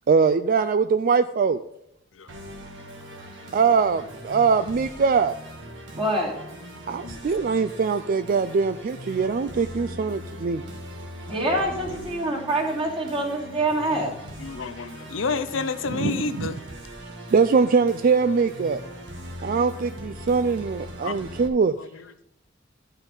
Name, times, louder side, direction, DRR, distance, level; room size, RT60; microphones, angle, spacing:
voice 1, 0.1-1.6 3.5-5.3 6.9-10.6 15.9-16.5 17.3-18.8 19.4-21.8, right 5 dB, 45° right, 11 dB, 0.4 m, -22 dB
Musical instrument, 2.3-21.5, equal, 70° right, 1.6 m, -40 dB
voice 2, 6.0-6.4 11.3-14.1, right 1 dB, 30° right, -3 dB, 2.9 m, -25 dB
voice 3, 11.7-12.1 14.4-16.6 21.0-21.2 21.8-22.1, left 4 dB, 75° left, 11 dB, 0.7 m, -30 dB
12.5 x 5.7 x 5.4 m, 0.80 s
head